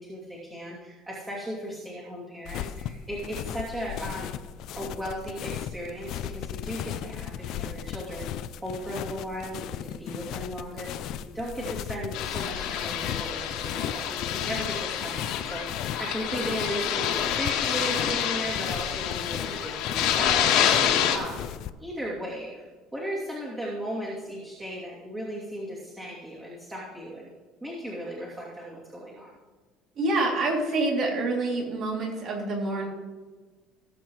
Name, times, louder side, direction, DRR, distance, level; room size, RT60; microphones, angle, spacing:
voice 1, 0.0-4.3 4.8-8.2 8.6-10.9 11.3-21.4 21.8-22.7 22.9-27.3 27.6-29.3, equal, 15° right, -6 dB, 2.7 m, -36 dB
sound 1, 2.4-21.7, left 10 dB, 55° left, 0.5 m, -37 dB
sound 2, 12.1-21.2, left 9 dB, 75° left, 1.8 m, -27 dB
voice 2, 30.0-32.9, right 2 dB, 45° right, -1 dB, 2.9 m, -27 dB
19.0 x 7.7 x 3.2 m, 1.4 s
cardioid pair, 140°, 0 cm